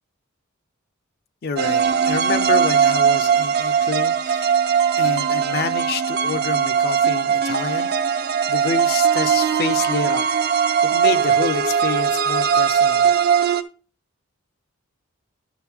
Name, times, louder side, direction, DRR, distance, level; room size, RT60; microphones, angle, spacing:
voice 1, 1.4-1.8 2.1-4.6 5.0-10.3 10.5-13.2, left 4 dB, 45° left, 0.5 m, -28 dB
sound 1, 1.6-13.6, right 7 dB, 45° right, 0.5 m, -19 dB
12.0 x 4.9 x 3.4 m
head